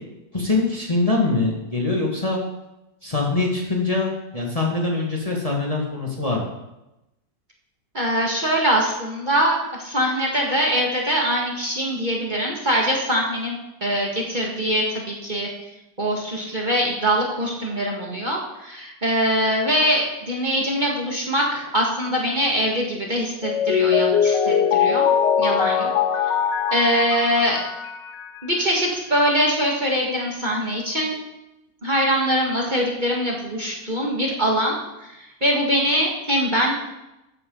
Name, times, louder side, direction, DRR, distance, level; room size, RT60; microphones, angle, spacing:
voice 1, 0.3-2.4 3.0-6.4, left 3 dB, 20° left, -2 dB, 1.9 m, -23 dB
voice 2, 7.9-15.5 16.0-25.1 25.4-25.9 26.7-27.6 28.4-31.2 31.8-34.8 35.0-36.7, equal, 25° right, -2 dB, 2.0 m, -23 dB
Mallet percussion, 23.4-28.4, left 7 dB, 90° left, 1.4 m, -21 dB
14.0 x 10.0 x 4.0 m, 0.93 s
omnidirectional pair, 1.9 m